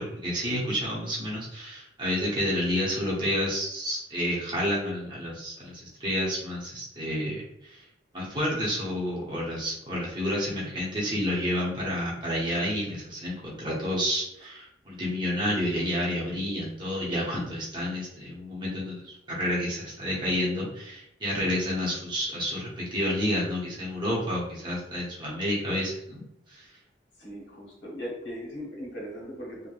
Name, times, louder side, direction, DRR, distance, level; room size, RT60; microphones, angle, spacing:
voice 1, 0.0-7.8 8.1-26.2 26.5-26.7, equal, 25° right, -6 dB, 0.8 m, -30 dB
voice 2, 27.2-29.7, equal, 75° left, -2 dB, 0.9 m, -38 dB
3.1 x 2.1 x 2.3 m, 0.80 s
head